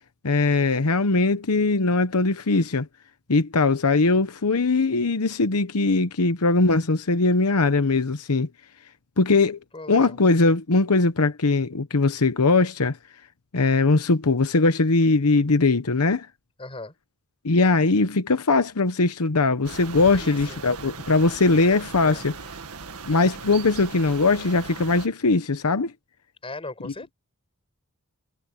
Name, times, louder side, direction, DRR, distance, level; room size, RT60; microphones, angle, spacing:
voice 1, 0.2-2.9 3.3-8.5 9.2-9.6 9.9-13.0 13.5-16.3 17.4-22.3 23.1-25.9 26.8-26.9, left 3 dB, 85° left, 1.0 m, -21 dB
voice 2, 9.7-10.2 16.6-16.9 20.1-20.6 22.0-22.2 26.4-27.1, left 2 dB, 25° left, 5.0 m, -38 dB
sound 1, 19.6-25.1, right 4 dB, 85° right, 1.8 m, -38 dB
head